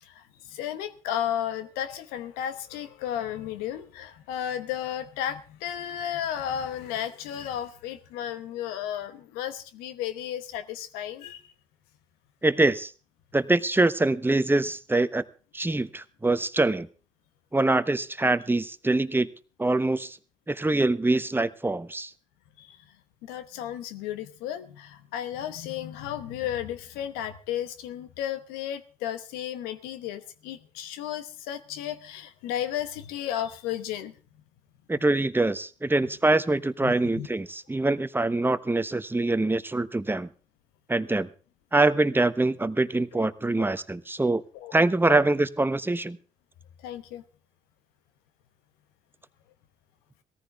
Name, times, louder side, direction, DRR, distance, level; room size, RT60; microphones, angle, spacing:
voice 1, 0.0-11.4 22.6-22.8 23.2-34.1 36.8-37.3 44.5-44.7 45.1-45.2 46.8-47.2, left 10 dB, 85° left, 11 dB, 1.0 m, -33 dB
voice 2, 12.4-12.9 13.3-15.2 15.5-16.9 17.5-19.3 19.6-20.2 20.5-22.1 34.9-40.3 40.9-41.3 41.7-44.4 44.7-46.2, right 2 dB, 15° right, 14 dB, 1.0 m, -24 dB
18.0 x 14.0 x 3.5 m, 0.37 s
hypercardioid pair, 50°, 15 cm